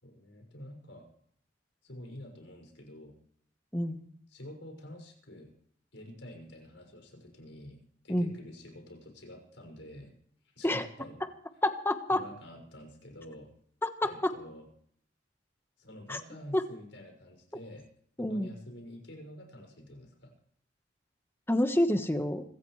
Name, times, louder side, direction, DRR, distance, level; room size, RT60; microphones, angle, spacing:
voice 1, 0.0-1.1 1.8-3.1 4.3-5.5 5.9-10.1 10.4-11.2 12.1-13.5 14.0-14.7 15.8-17.9 18.2-20.3, left 1 dB, 85° left, 3 dB, 6.2 m, -48 dB
voice 2, 3.7-4.0 8.1-8.3 10.6-10.9 11.6-12.2 13.8-14.3 16.1-16.2 16.5-16.6 18.2-18.5 21.5-22.4, left 1 dB, 10° left, 7 dB, 1.3 m, -28 dB
26.0 x 14.5 x 3.3 m, 0.64 s
head